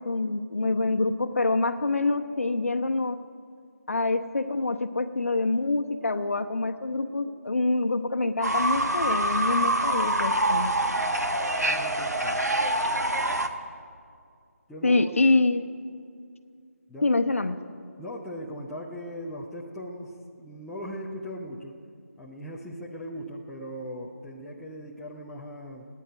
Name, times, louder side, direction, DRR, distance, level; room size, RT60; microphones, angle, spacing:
voice 1, 0.0-3.2 3.9-10.7 14.8-15.6 17.0-17.6, left 2 dB, 60° left, 7 dB, 1.0 m, -26 dB
Fowl / Bird, 8.4-13.5, right 1 dB, 85° right, 1.4 m, -25 dB
voice 2, 11.6-12.4 14.7-15.1 16.9-17.1 18.0-20.1 20.4-21.8 22.2-25.9, equal, ahead, -6 dB, 0.4 m, -39 dB
16.0 x 9.7 x 9.1 m, 2.3 s
figure-of-eight pair, 160°, 8 cm